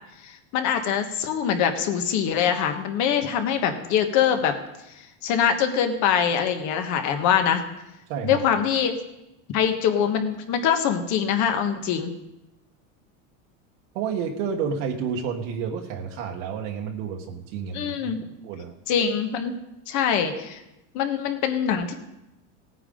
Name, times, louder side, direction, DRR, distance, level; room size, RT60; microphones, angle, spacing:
voice 1, 0.2-4.5 5.2-7.6 8.2-8.9 9.5-12.1 17.7-18.2 18.9-19.5 19.9-20.6 20.9-21.9, left 8 dB, 45° left, 6 dB, 1.5 m, -23 dB
voice 2, 13.9-18.2 18.4-18.7, right 6 dB, 70° right, 1 dB, 1.6 m, -30 dB
17.5 x 9.2 x 3.9 m, 0.93 s
supercardioid pair, 155°, 39 cm